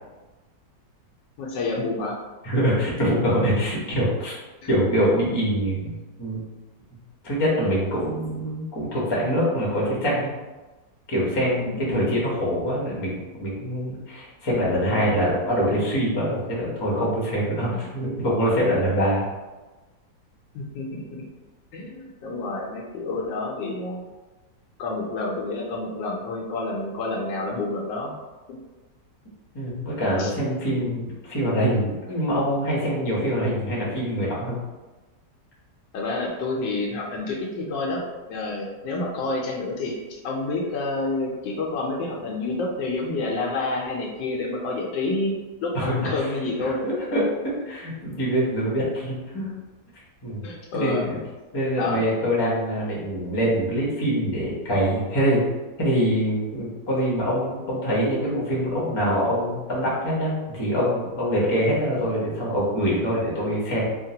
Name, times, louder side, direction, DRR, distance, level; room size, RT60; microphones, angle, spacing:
voice 1, 1.4-2.2 11.5-12.0 20.5-21.2 21.7-24.0 24.8-28.1 28.5-28.6 30.2-30.3 35.9-38.0 38.3-45.3 45.6-46.8 50.4-51.0 51.8-52.1, left 2 dB, 85° left, -2 dB, 1.3 m, -29 dB
voice 2, 2.4-4.4 4.7-6.4 7.2-10.3 11.1-19.3 29.5-34.6 45.7-46.1 46.6-49.5 50.2-50.5 50.7-51.2 51.5-55.5 55.8-63.9, equal, 30° left, -6 dB, 0.5 m, -24 dB
3.6 x 2.1 x 2.7 m, 1.2 s
omnidirectional pair, 1.9 m